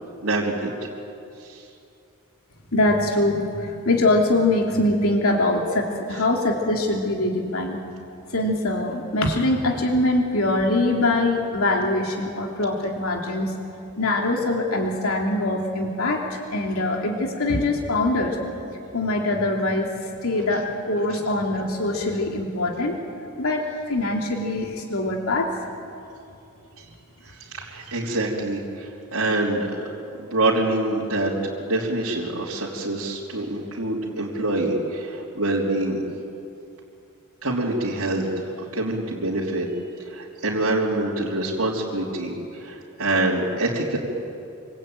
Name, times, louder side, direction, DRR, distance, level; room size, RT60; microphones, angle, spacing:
voice 1, 0.2-0.7 1.4-1.6 21.1-21.2 26.8-26.9 27.2-29.8 30.2-36.0 37.4-39.7 40.0-44.0, right 2 dB, 70° right, -6 dB, 3.5 m, -26 dB
voice 2, 2.7-7.8 8.3-13.5 14.0-18.4 18.9-19.9 20.2-22.9 23.4-25.5, left 2 dB, 70° left, 1 dB, 3.0 m, -23 dB
26.0 x 26.0 x 9.0 m, 2.6 s
head